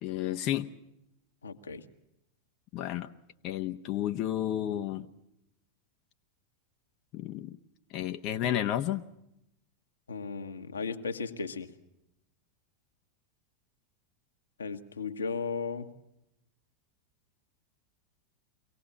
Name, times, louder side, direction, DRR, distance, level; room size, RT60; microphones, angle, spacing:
voice 1, 0.0-0.7 2.7-3.1 3.4-5.1 7.1-7.6 7.9-9.0, left 12 dB, 45° left, 6 dB, 1.0 m, -31 dB
voice 2, 1.4-1.8 10.1-11.7 14.6-15.9, left 5 dB, 85° left, 6 dB, 1.5 m, -35 dB
24.0 x 18.0 x 7.3 m, 0.83 s
hypercardioid pair, 90°, 0 cm